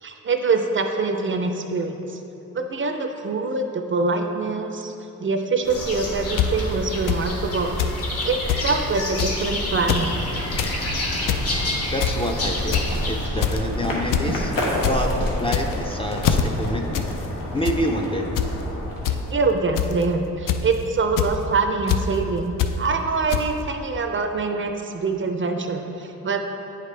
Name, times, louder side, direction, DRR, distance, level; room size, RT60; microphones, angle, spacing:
voice 1, 0.0-2.2 2.5-4.9 5.2-7.8 8.2-10.2 19.1-26.4, right 4 dB, 40° right, 5 dB, 0.4 m, -24 dB
sound 1, 5.7-13.3, left 1 dB, 45° left, 1.1 m, -29 dB
sound 2, 6.4-6.5 7.1-7.2 7.8-8.2 8.5-8.6 9.2-9.4 9.8-10.0 10.4-10.7 11.1-11.4 12.0-12.3 12.7-13.0 13.4-13.7 14.1-14.3 14.6-14.9 15.4-15.8 16.2-16.4 16.9-17.1 17.4-17.8 18.4-18.5 19.0-19.2 19.8-20.0 20.5-20.7 21.2-21.3 21.9-22.0 22.6-22.7 23.3-23.4, left 10 dB, 70° left, 0.5 m, -22 dB
sound 3, 9.2-19.9, left 1 dB, 90° left, 1.3 m, -30 dB
voice 2, 11.9-17.1 17.5-18.4, equal, 15° left, 1 dB, 0.4 m, -27 dB
9.2 x 5.0 x 3.2 m, 3.0 s
cardioid pair, 115°, 34 cm